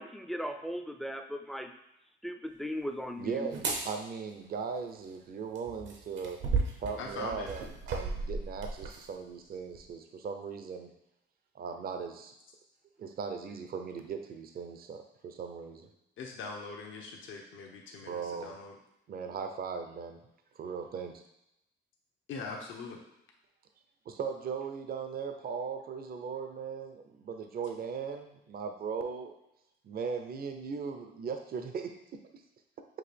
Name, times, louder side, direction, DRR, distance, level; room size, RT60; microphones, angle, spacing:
voice 1, 0.0-1.7 2.2-3.5, equal, ahead, 6 dB, 0.4 m, -37 dB
voice 2, 3.2-6.4 6.8-10.9 11.5-12.3 13.0-15.9 18.0-18.5 19.1-20.2 20.6-21.2 24.1-29.3 29.8-32.2, right 6 dB, 50° right, 6 dB, 0.6 m, -38 dB
sound 1, 3.5-3.8 5.6-9.1 9.7-9.9, right 4 dB, 70° right, 0.9 m, -34 dB
voice 3, 7.0-7.5 16.2-18.8 22.3-23.0, left 4 dB, 75° left, 1 dB, 0.9 m, -42 dB
5.9 x 2.5 x 3.4 m, 0.83 s
cardioid pair, 90°, 20 cm